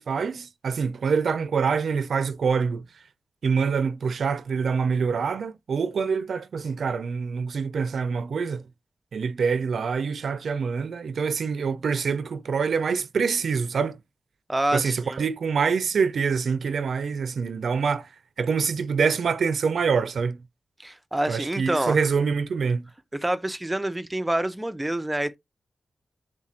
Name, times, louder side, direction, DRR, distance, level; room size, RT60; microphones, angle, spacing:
voice 1, 0.0-2.8 3.4-8.6 9.1-14.0 14.7-18.1 18.4-20.4 21.3-22.8, right 5 dB, 75° right, 0.4 m, -25 dB
voice 2, 14.5-15.2 20.8-22.0 23.1-25.4, right 1 dB, 10° right, 0.4 m, -27 dB
3.7 x 2.5 x 4.2 m
wide cardioid pair, 180°, 0 cm